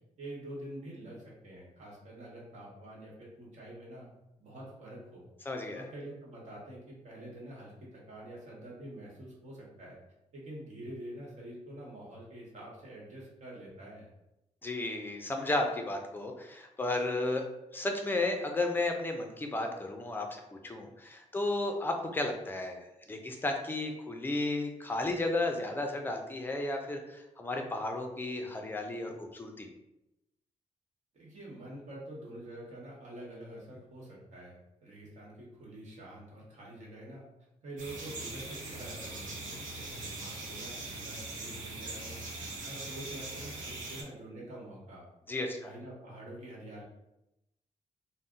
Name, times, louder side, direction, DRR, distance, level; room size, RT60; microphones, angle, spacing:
voice 1, 0.2-4.1 4.4-5.3 5.7-10.0 10.3-14.1 31.1-37.3 37.6-42.2 42.6-45.1 45.6-46.8, right 1 dB, 65° right, -3 dB, 1.1 m, -46 dB
voice 2, 5.5-5.8 14.6-17.4 17.7-22.8 23.1-29.7 45.3-45.7, left 2 dB, 15° left, 3 dB, 0.4 m, -33 dB
sound 1, 37.8-44.0, right 2 dB, 85° right, 0.8 m, -41 dB
2.6 x 2.0 x 3.7 m, 0.90 s
cardioid pair, 130°, 13 cm